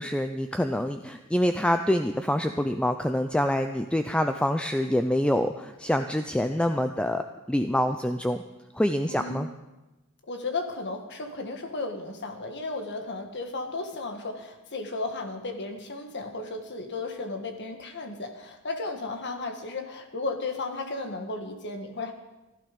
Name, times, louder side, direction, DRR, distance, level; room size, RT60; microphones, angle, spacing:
voice 1, 0.0-8.4 8.7-9.5, left 1 dB, 5° left, 7 dB, 0.4 m, -26 dB
voice 2, 9.0-9.4 10.3-22.1, left 3 dB, 55° left, 4 dB, 1.5 m, -34 dB
15.5 x 11.5 x 5.2 m, 1.1 s
head